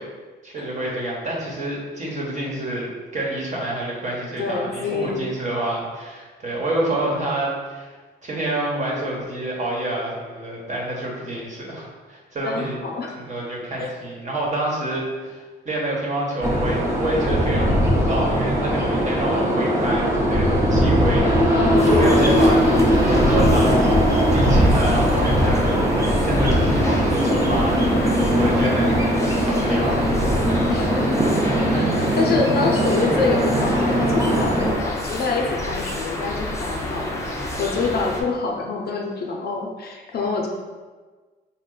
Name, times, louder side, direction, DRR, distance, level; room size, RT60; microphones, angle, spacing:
voice 1, 0.4-7.9 8.2-12.8 13.2-22.6 23.1-23.8 24.1-25.9 26.2-30.1, right 1 dB, 35° right, -3 dB, 1.2 m, -28 dB
voice 2, 4.4-5.3 12.4-13.1 13.8-13.9 21.5-22.3 30.7-31.3 31.7-31.9 32.2-40.5, left 4 dB, 55° left, 0 dB, 0.6 m, -26 dB
sound 1, 16.4-34.7, equal, 15° right, 0.9 m, -19 dB
sound 2, 21.8-38.2, left 1 dB, 15° left, 0.7 m, -30 dB
4.4 x 2.2 x 3.8 m, 1.4 s
cardioid pair, 90°, 20 cm